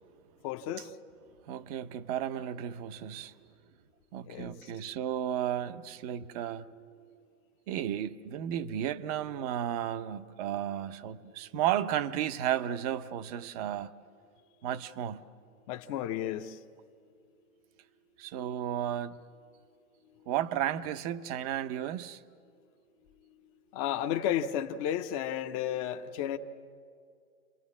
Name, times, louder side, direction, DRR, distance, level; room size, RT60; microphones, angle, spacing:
voice 1, 0.4-0.9 4.2-4.7 15.7-16.6 23.7-26.4, left 10 dB, 25° left, 0.6 m, -33 dB
voice 2, 1.5-3.3 4.1-7.2 7.7-13.9 14.6-15.2 18.2-19.2 20.3-22.2, right 11 dB, 25° right, 0.6 m, -33 dB
29.0 x 22.5 x 7.2 m
hypercardioid pair, 135°, 45 cm